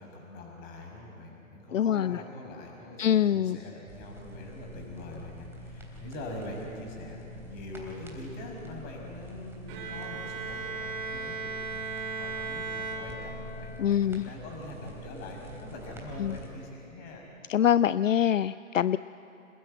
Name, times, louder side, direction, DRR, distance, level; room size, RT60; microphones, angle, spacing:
voice 1, 0.0-17.2, left 1 dB, 20° left, 0 dB, 6.1 m, -43 dB
voice 2, 1.7-2.2 3.0-3.6 13.8-14.3 16.2-16.4 17.5-19.0, left 10 dB, 65° left, 16 dB, 0.5 m, -24 dB
sound 1, 3.9-16.5, equal, 5° right, 3.5 m, -46 dB
Bowed string instrument, 9.7-13.7, right 4 dB, 25° right, 3.7 m, -36 dB
26.5 x 20.5 x 9.0 m, 2.8 s
figure-of-eight pair, 140°, 41 cm